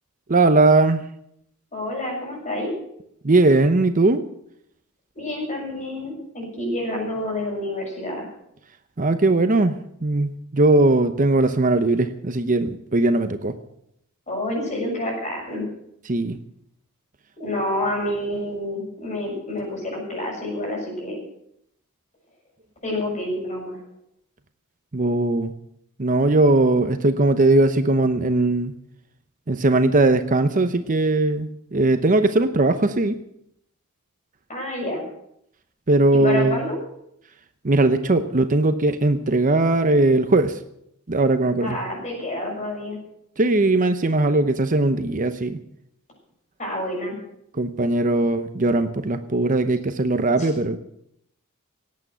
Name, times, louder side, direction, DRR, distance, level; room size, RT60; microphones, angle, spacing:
voice 1, 0.3-1.0 3.2-4.2 9.0-13.5 16.1-16.4 24.9-25.5 26.0-28.7 29.5-33.1 35.9-36.6 37.6-40.6 41.1-41.8 43.4-45.6 47.6-50.8, right 2 dB, 40° right, 9 dB, 0.8 m, -19 dB
voice 2, 1.7-2.7 5.2-8.3 14.3-15.7 17.4-21.2 22.8-23.8 34.5-35.0 36.1-36.7 41.6-43.0 46.6-47.2 50.4-50.5, left 1 dB, 35° left, -1 dB, 6.9 m, -28 dB
18.0 x 8.6 x 7.8 m, 0.76 s
head